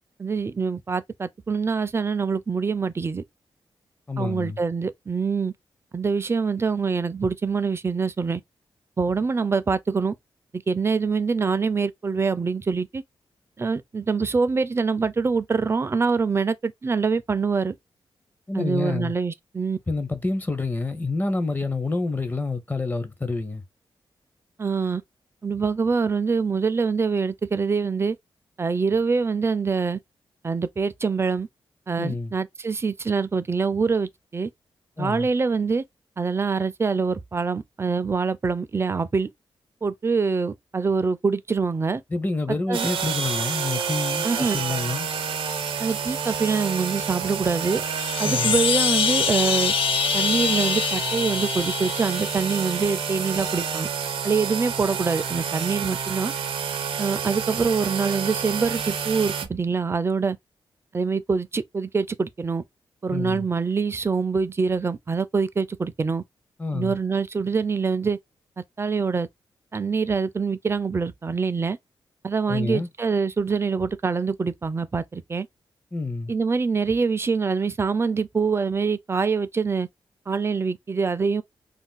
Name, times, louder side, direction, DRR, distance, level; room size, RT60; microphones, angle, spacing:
voice 1, 0.2-3.2 4.2-5.5 5.9-8.4 9.0-10.2 10.5-13.0 13.6-17.8 18.5-19.8 24.6-25.0 25.4-28.2 28.6-30.0 30.4-31.5 31.9-34.5 35.0-35.8 36.2-39.3 39.8-42.0 42.7-42.9 44.2-44.6 45.8-47.8 48.2-49.7 50.1-53.9 54.2-56.3 57.0-60.4 60.9-62.6 63.0-66.2 66.7-68.2 68.6-69.3 69.7-71.8 72.2-75.5 76.3-79.9 80.3-81.4, right 5 dB, 30° right, 0.4 m, -25 dB
voice 2, 4.1-4.6 18.5-19.1 19.9-23.6 32.0-32.3 35.0-35.3 42.1-45.1 48.2-48.6 63.1-63.5 66.6-67.0 72.5-72.9 75.9-76.3, left 3 dB, 20° left, 0.6 m, -28 dB
sound 1, 42.7-59.5, right 6 dB, 85° right, 0.6 m, -29 dB
sound 2, 47.8-52.9, left 8 dB, 80° left, 0.4 m, -25 dB
2.5 x 2.2 x 3.6 m
cardioid pair, 90°, 9 cm